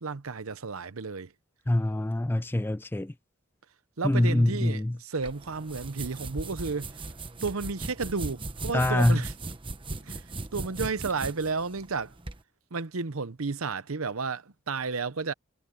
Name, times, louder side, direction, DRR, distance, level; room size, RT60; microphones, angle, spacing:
voice 1, 0.0-1.3 4.0-7.0 7.4-9.3 9.9-12.1 12.7-15.3, right 4 dB, 85° right, 0.9 m, -32 dB
voice 2, 1.7-3.1 4.0-5.0 8.7-9.2, left 1 dB, 10° left, 0.3 m, -24 dB
sound 1, 5.2-12.4, right 2 dB, 25° right, 1.2 m, -38 dB
head